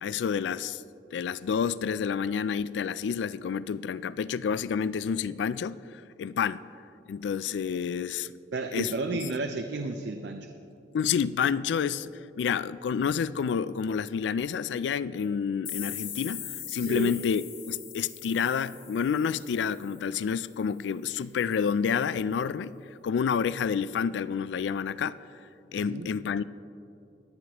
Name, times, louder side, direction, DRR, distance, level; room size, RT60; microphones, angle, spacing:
voice 1, 0.0-0.8 1.1-6.6 7.1-8.3 8.7-8.9 10.9-12.1 12.4-22.7 23.0-25.2 25.7-26.4, left 6 dB, 75° left, 17 dB, 0.3 m, -29 dB
voice 2, 8.5-10.5 16.8-17.1 25.7-26.1, right 3 dB, 70° right, 6 dB, 0.5 m, -32 dB
sound 1, 15.7-20.3, left 10 dB, 50° left, 1.1 m, -41 dB
17.5 x 11.0 x 3.0 m, 2.7 s
head